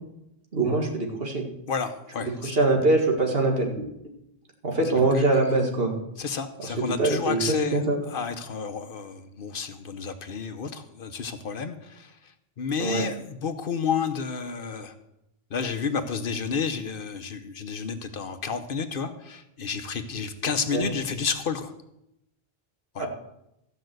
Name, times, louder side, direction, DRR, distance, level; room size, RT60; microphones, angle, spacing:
voice 1, 0.5-1.5 2.2-3.9 4.6-5.9 6.8-8.0 12.8-13.0 20.7-20.9 23.0-23.1, right 2 dB, 70° right, 2 dB, 2.1 m, -23 dB
voice 2, 1.7-2.6 4.8-5.4 6.2-12.3 12.6-14.9 15.5-21.7 22.9-23.1, left 5 dB, 60° left, 9 dB, 1.0 m, -31 dB
14.0 x 5.6 x 7.8 m, 0.85 s
omnidirectional pair, 1.0 m